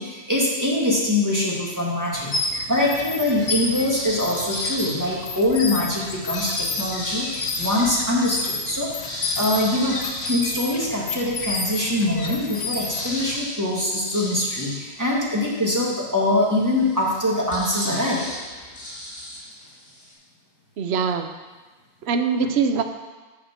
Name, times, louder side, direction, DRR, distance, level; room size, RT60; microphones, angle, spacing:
voice 1, 0.0-10.0 10.3-18.3, left 1 dB, 15° right, -5 dB, 1.6 m, -23 dB
sound 1, 2.1-13.4, left 3 dB, 85° left, 1.4 m, -30 dB
sound 2, 3.4-5.5 6.1-11.3 11.8-11.9 12.1-20.1, left 1 dB, 65° left, 2.6 m, -36 dB
voice 2, 20.8-21.3 22.0-22.8, right 5 dB, 60° right, 7 dB, 0.9 m, -23 dB
6.7 x 6.6 x 5.7 m, 1.3 s
omnidirectional pair, 1.3 m